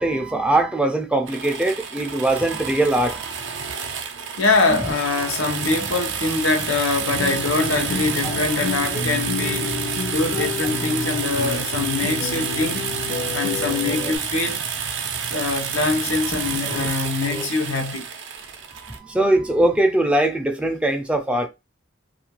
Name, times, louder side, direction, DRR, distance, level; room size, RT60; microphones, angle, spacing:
voice 1, 0.0-3.3 8.2-8.3 14.0-14.1 16.3-16.9 17.3-17.5 18.8-21.5, right 1 dB, 5° right, 0.4 m, -22 dB
sound 1, 1.3-19.0, right 6 dB, 60° right, 0.5 m, -29 dB
voice 2, 4.4-9.7 10.1-12.8 13.3-14.6 15.3-18.1, left 3 dB, 85° left, 0.7 m, -23 dB
sound 2, 7.1-14.2, left 3 dB, 50° left, 0.5 m, -30 dB
2.4 x 2.2 x 2.9 m
head